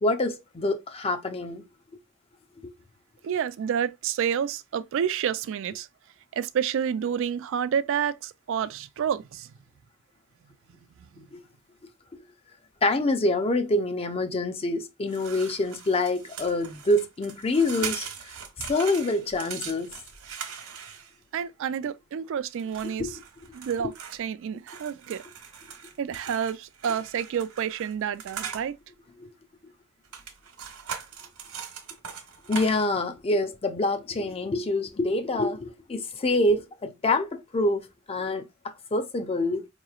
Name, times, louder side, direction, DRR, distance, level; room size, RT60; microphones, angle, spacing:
voice 1, 0.0-1.6 11.3-11.4 12.8-18.1 18.6-19.9 22.8-23.1 29.2-29.3 32.5-39.7, left 2 dB, 25° left, 0.5 m, -26 dB
voice 2, 3.2-5.9 6.3-9.5 21.3-23.1 23.5-23.9 24.2-25.2 26.0-28.8, right 8 dB, 60° right, 0.3 m, -29 dB
sound 1, 15.1-21.4 22.5-24.2 24.7-28.7 30.0-33.0, right 7 dB, 80° right, 1.0 m, -40 dB
4.7 x 2.9 x 2.4 m
head